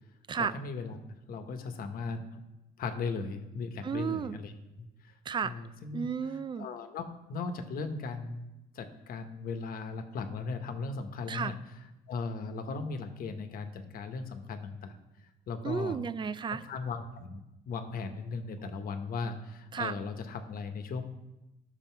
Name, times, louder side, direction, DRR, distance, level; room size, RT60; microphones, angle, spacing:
voice 1, 0.3-1.0 1.3-2.4 2.8-4.5 4.8-5.1 5.4-6.1 6.6-8.5 8.7-11.8 12.1-16.0 16.6-21.0, left 4 dB, 60° left, 7 dB, 1.2 m, -37 dB
voice 2, 3.8-4.4 5.3-5.5 5.9-6.7 11.3-11.5 15.6-16.6 19.7-19.9, right 6 dB, 30° right, 15 dB, 0.4 m, -32 dB
11.5 x 6.6 x 4.6 m, 0.96 s
cardioid pair, 110°, 17 cm